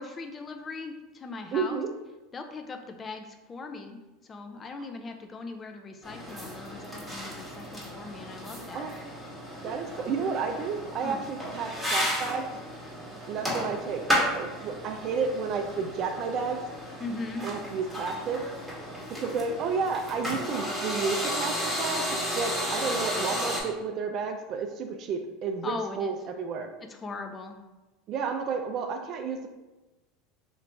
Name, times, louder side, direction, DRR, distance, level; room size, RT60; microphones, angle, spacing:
voice 1, 0.0-1.8 2.3-8.9 11.0-11.2 17.0-17.5 25.6-26.2 26.9-27.6, left 3 dB, 25° left, 5 dB, 0.4 m, -39 dB
voice 2, 1.5-1.9 8.7-8.9 9.6-12.4 13.3-14.0 14.4-16.6 17.4-18.4 19.2-22.0 22.3-26.7 28.1-29.5, right 5 dB, 50° right, 5 dB, 0.3 m, -31 dB
sound 1, 6.0-23.6, equal, ahead, 1.2 m, -33 dB
3.0 x 2.4 x 3.4 m, 1.1 s
hypercardioid pair, 100°, 0 cm